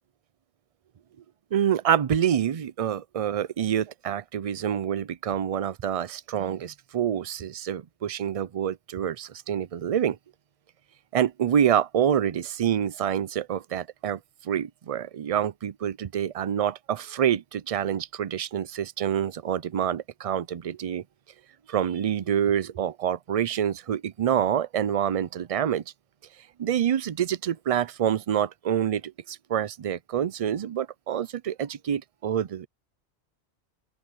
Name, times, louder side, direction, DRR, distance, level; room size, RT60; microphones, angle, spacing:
voice 1, 1.5-10.2 11.1-21.0 21.7-25.8 26.6-32.7, right 9 dB, 55° right, 0.4 m, -27 dB
open air
omnidirectional pair, 1.2 m